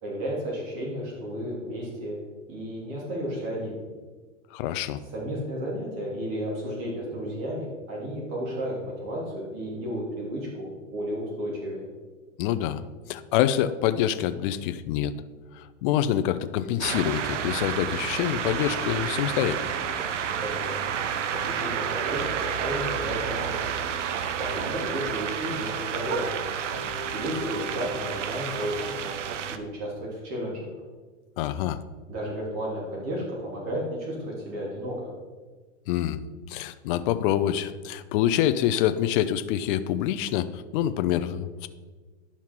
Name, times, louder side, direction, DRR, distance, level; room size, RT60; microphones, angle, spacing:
voice 1, 0.0-2.2 2.5-3.8 5.1-11.9 20.4-20.9 21.3-23.6 24.3-26.4 27.1-29.1 29.5-30.7 32.1-35.1, equal, 40° right, -3 dB, 3.1 m, -33 dB
voice 2, 4.5-5.0 12.4-12.8 13.1-15.1 15.5-19.6 31.4-31.8 35.9-36.2 36.5-41.7, left 11 dB, 45° left, 12 dB, 0.6 m, -26 dB
sound 1, 16.8-29.6, right 7 dB, 80° right, 0.8 m, -30 dB
11.0 x 5.8 x 4.5 m, 1.4 s
hypercardioid pair, 125°, 36 cm